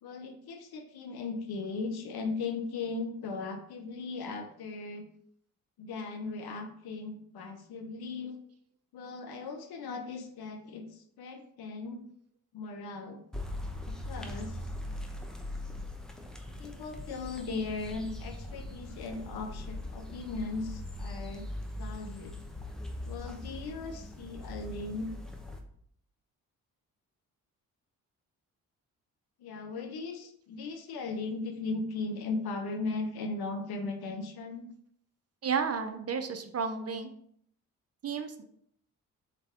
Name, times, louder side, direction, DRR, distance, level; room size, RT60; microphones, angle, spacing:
voice 1, 0.0-5.1 5.8-8.4 8.9-12.1 12.5-13.2 14.0-14.6 16.6-21.5 21.8-22.3 23.1-25.1 29.4-34.7, left 3 dB, 65° left, 6 dB, 0.8 m, -37 dB
sound 1, 13.3-25.6, left 1 dB, ahead, 0.8 m, -41 dB
voice 2, 35.4-37.1 38.0-38.4, right 6 dB, 35° right, 7 dB, 0.6 m, -32 dB
4.0 x 3.3 x 3.7 m, 0.66 s
hypercardioid pair, 45°, 41 cm